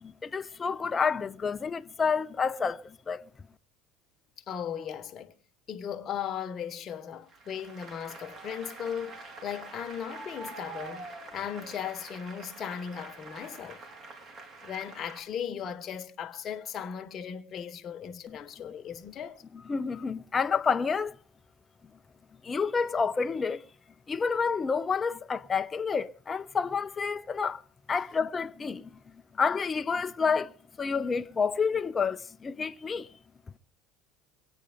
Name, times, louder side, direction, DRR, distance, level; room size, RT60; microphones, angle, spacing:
voice 1, 0.0-3.2 18.3-18.4 19.5-21.2 22.4-23.7 24.1-27.6 27.9-29.0 29.3-30.5 30.8-33.1, left 5 dB, 25° left, 0.6 m, -29 dB
voice 2, 4.5-5.3 5.7-13.8 14.6-19.4 19.9-20.0, left 8 dB, 40° left, 1.4 m, -37 dB
Applause, 7.3-15.2, right 3 dB, 40° right, 4.1 m, -45 dB
22.5 x 9.2 x 5.2 m
supercardioid pair, 110°, 0 cm